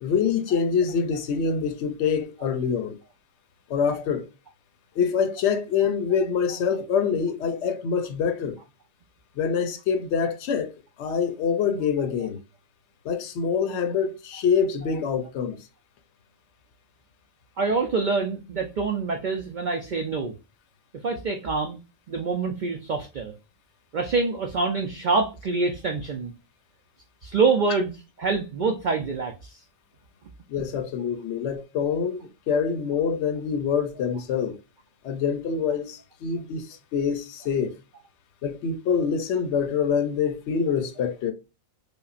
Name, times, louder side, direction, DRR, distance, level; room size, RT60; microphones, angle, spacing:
voice 1, 0.0-3.0 3.7-4.3 5.0-8.6 9.4-10.7 11.0-12.4 13.0-15.6 30.5-34.6 35.0-37.7 38.4-41.3, left 6 dB, 65° left, 0.8 m, -25 dB
voice 2, 17.6-20.3 21.0-21.8 22.1-23.3 23.9-26.3 27.2-27.9 28.2-29.6, right 4 dB, 85° right, 0.4 m, -26 dB
5.2 x 2.1 x 2.4 m
omnidirectional pair, 1.4 m